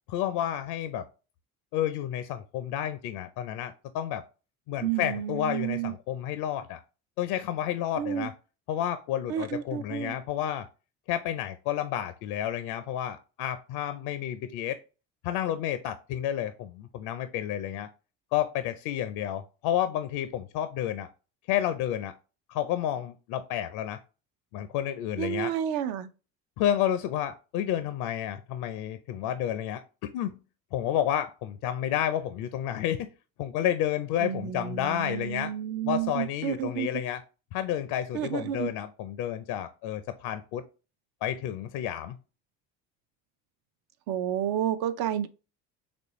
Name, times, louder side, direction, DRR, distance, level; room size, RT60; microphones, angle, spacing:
voice 1, 0.1-1.0 1.7-4.2 4.7-6.8 7.2-8.3 8.7-10.7 11.1-14.8 15.2-17.9 18.3-21.1 21.5-22.1 22.5-24.0 24.5-25.5 26.6-29.8 30.1-30.3 30.7-33.1 33.4-35.5 35.9-37.2 37.5-40.6 41.2-42.2, left 11 dB, 70° left, 0.5 m, -30 dB
voice 2, 4.8-5.9 8.0-8.3 9.3-10.1 25.2-26.1 34.2-36.9 38.1-38.7 44.1-45.3, right 10 dB, 65° right, 0.6 m, -30 dB
4.2 x 3.1 x 3.0 m
supercardioid pair, 70°, 40 cm